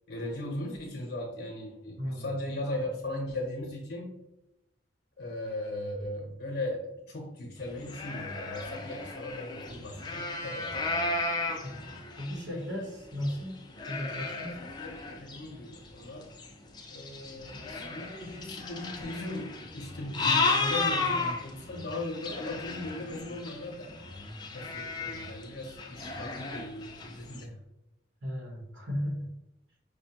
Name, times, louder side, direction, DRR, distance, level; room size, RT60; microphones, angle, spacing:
voice 1, 0.1-4.1 5.2-11.1 14.8-16.4 16.9-23.9 24.5-27.6, left 1 dB, 65° left, -1 dB, 0.7 m, -38 dB
voice 2, 2.0-2.3 11.6-13.6 13.9-14.6 28.2-29.4, equal, 80° right, -1 dB, 1.1 m, -36 dB
sound 1, 7.6-12.8 13.2-27.4, left 3 dB, 25° left, 0.4 m, -34 dB
5.1 x 2.2 x 2.8 m, 0.91 s
head